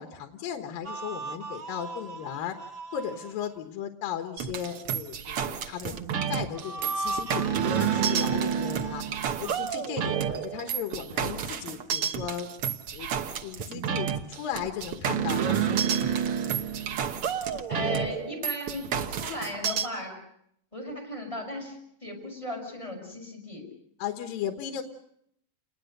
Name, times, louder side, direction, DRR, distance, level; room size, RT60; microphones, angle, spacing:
voice 1, 0.0-2.6 2.9-6.0 6.3-9.0 9.4-12.5 12.9-13.1 13.4-16.4 24.0-24.8, left 9 dB, 75° left, 6 dB, 3.0 m, -36 dB
sound 1, 0.8-3.6 6.5-9.6, right 4 dB, 50° right, 1.0 m, -37 dB
sound 2, 4.4-19.9, right 8 dB, 70° right, 1.3 m, -29 dB
voice 2, 17.7-18.9 19.2-20.2 20.7-23.7, left 2 dB, 10° left, 0 dB, 6.1 m, -36 dB
28.5 x 20.5 x 6.6 m, 0.72 s
omnidirectional pair, 4.2 m